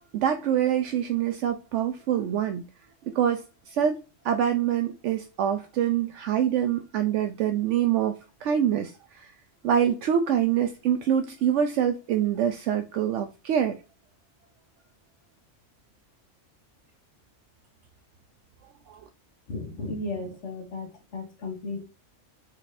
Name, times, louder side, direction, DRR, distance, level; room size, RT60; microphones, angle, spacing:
voice 1, 0.1-2.6 3.1-4.0 4.2-8.9 9.2-9.3 9.6-13.8 18.9-19.0, right 9 dB, 75° right, 0.9 m, -25 dB
voice 2, 19.5-21.8, left 2 dB, 70° left, 1.4 m, -35 dB
4.7 x 4.2 x 2.6 m
omnidirectional pair, 1.3 m